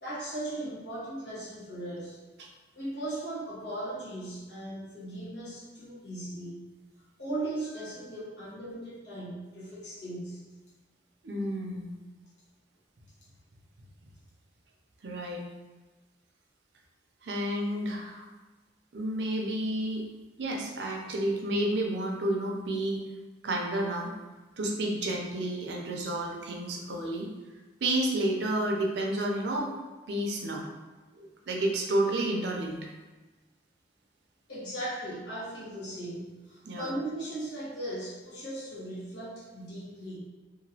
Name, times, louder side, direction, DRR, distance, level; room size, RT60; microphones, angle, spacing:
voice 1, 0.0-2.2 2.7-6.7 7.2-10.4 34.5-40.2, right 1 dB, 75° left, -9 dB, 1.2 m, -38 dB
voice 2, 11.2-11.9 15.0-15.4 17.2-18.3 18.9-20.0 20.4-23.0 23.4-24.1 24.6-27.3 27.8-29.7 30.1-30.6 31.1-32.8 36.6-36.9, right 1 dB, 70° right, 0 dB, 0.5 m, -30 dB
2.9 x 2.5 x 2.8 m, 1.2 s
head